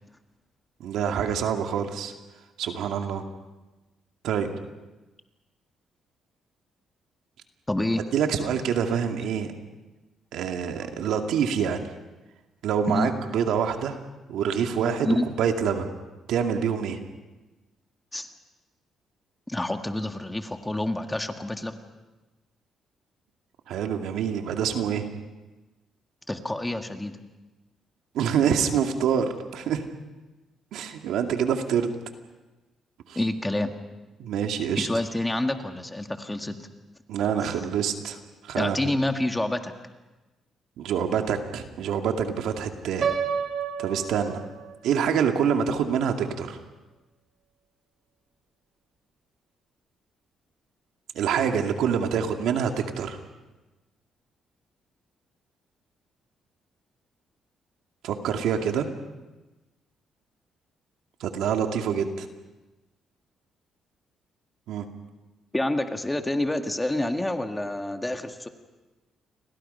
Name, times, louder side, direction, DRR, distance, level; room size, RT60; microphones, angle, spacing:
voice 1, 0.8-2.1 2.6-3.2 4.2-4.5 8.1-9.5 10.3-11.9 12.6-14.0 14.3-15.9 16.3-17.0 23.7-25.1 28.1-29.8 30.7-31.9 33.1-33.2 34.2-34.9 37.1-38.2 38.4-38.8 40.8-43.1 43.8-44.4 44.8-46.6 51.1-53.2 58.0-58.9 61.2-62.3 64.7-64.9, right 7 dB, 85° right, 4 dB, 2.3 m, -26 dB
voice 2, 7.7-8.0 12.9-13.1 15.0-15.3 18.1-18.3 19.5-21.8 26.3-27.2 33.1-33.7 34.8-36.6 38.5-39.7 65.5-68.5, left 1 dB, 10° left, 6 dB, 1.8 m, -27 dB
Piano, 43.0-45.0, right 7 dB, 55° right, 3.1 m, -30 dB
29.5 x 23.0 x 5.6 m, 1.1 s
cardioid pair, 115°, 0 cm